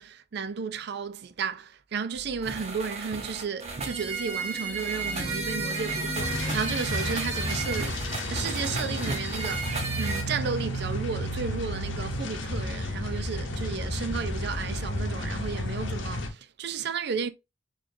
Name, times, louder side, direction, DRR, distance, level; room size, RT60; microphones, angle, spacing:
voice 1, 0.0-17.3, right 5 dB, 60° right, 0.4 m, -33 dB
sound 1, 2.1-10.2, right 4 dB, 35° right, 0.9 m, -33 dB
sound 2, 4.1-9.5, left 2 dB, 25° left, 0.5 m, -39 dB
sound 3, 6.2-16.3, left 1 dB, 75° left, 0.8 m, -32 dB
4.1 x 3.2 x 2.6 m
head